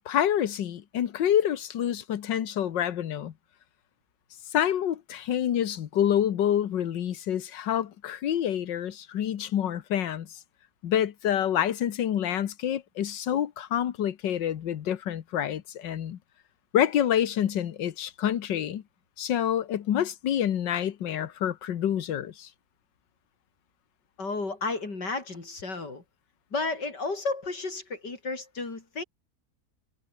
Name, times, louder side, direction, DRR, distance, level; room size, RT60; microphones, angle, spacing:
voice 1, 0.0-3.3 4.5-10.3 10.8-16.2 16.7-18.8 19.2-22.5, left 10 dB, 90° left, 1.8 m, -27 dB
voice 2, 24.2-26.0 26.5-29.0, left 3 dB, 70° left, 5.4 m, -32 dB
omnidirectional pair, 1.9 m